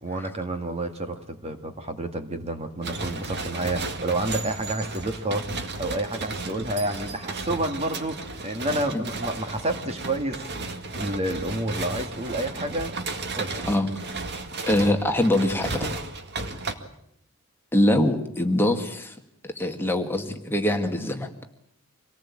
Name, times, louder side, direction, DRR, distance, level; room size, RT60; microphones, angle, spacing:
voice 1, 0.0-10.4 11.0-13.0 13.3-13.7 16.4-16.6, right 1 dB, 30° right, 6 dB, 1.8 m, -30 dB
sound 1, 2.8-16.7, right 3 dB, 50° right, 2.0 m, -34 dB
voice 2, 14.7-16.0 17.7-19.2 19.4-21.3, left 1 dB, 10° left, 4 dB, 1.9 m, -23 dB
26.5 x 18.5 x 8.6 m, 0.76 s
head